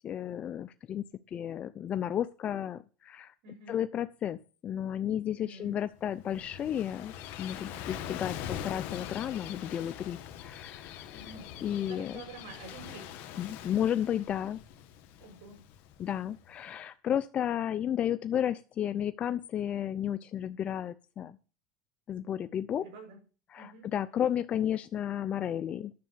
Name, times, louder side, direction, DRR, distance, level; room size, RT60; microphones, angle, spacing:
voice 1, 0.0-3.3 3.7-11.3 11.6-12.2 13.4-14.6 16.0-21.4 22.1-22.8 23.5-25.9, left 10 dB, 35° left, 11 dB, 0.6 m, -33 dB
voice 2, 3.4-3.8 5.3-5.8 11.1-11.5 11.7-13.1 15.2-15.6 22.8-23.2 23.6-23.9, right 3 dB, 70° right, 2 dB, 7.2 m, -48 dB
Gull seagull / Waves surf, 5.9-16.5, left 10 dB, 60° left, 1.4 m, -43 dB
10.5 x 6.8 x 8.0 m, 0.36 s
supercardioid pair, 110°, 4 cm